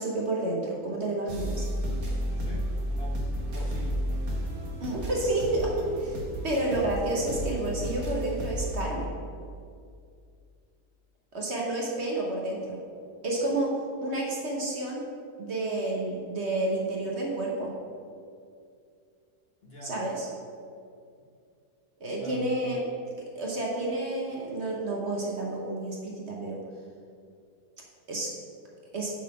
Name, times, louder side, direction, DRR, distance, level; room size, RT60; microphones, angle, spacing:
voice 1, 0.0-1.7 4.8-9.1 11.3-12.8 13.2-13.7 14.0-15.0 15.4-17.7 19.8-20.3 22.0-22.8 23.3-26.6 28.1-28.3 28.9-29.1, right 2 dB, 50° right, -2 dB, 1.1 m, -30 dB
sound 1, 1.3-8.8, equal, 65° right, 1.7 m, -32 dB
voice 2, 2.2-4.0 19.6-20.0 22.2-22.5, equal, 45° left, -3 dB, 1.1 m, -44 dB
7.4 x 4.0 x 5.9 m, 2.3 s
omnidirectional pair, 1.7 m